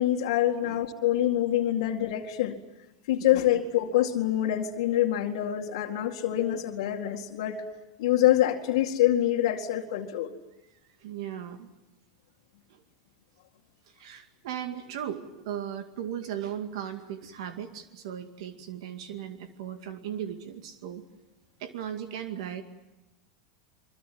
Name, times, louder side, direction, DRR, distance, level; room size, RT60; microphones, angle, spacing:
voice 1, 0.0-2.6 3.1-7.6 8.0-10.3, left 12 dB, 70° left, -1 dB, 2.2 m, -25 dB
voice 2, 10.8-11.7 12.7-12.8 13.9-21.0 21.6-22.6, right 9 dB, 70° right, 8 dB, 2.2 m, -37 dB
24.5 x 24.0 x 9.4 m, 1.0 s
hypercardioid pair, 100°, 3 cm